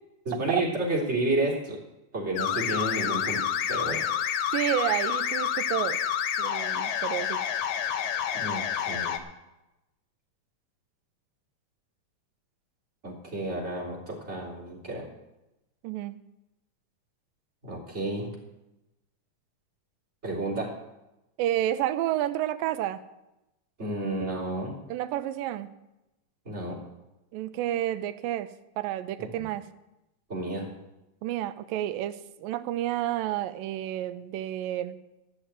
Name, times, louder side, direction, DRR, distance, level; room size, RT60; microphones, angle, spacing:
voice 1, 0.3-1.8 2.1-3.4 3.7-4.0 8.3-9.2 13.0-15.1 17.6-18.3 20.2-20.7 23.8-24.8 26.5-26.8 29.2-29.5 30.3-30.7, right 2 dB, 20° right, -4 dB, 3.5 m, -31 dB
sound 1, 2.4-9.2, left 9 dB, 85° left, 2.5 m, -29 dB
voice 2, 4.5-6.0 6.4-7.4 15.8-16.2 21.4-23.0 24.9-25.7 27.3-28.5 28.8-29.6 31.2-35.0, right 13 dB, 85° right, 10 dB, 2.4 m, -30 dB
13.0 x 6.6 x 8.9 m, 0.95 s
omnidirectional pair, 3.9 m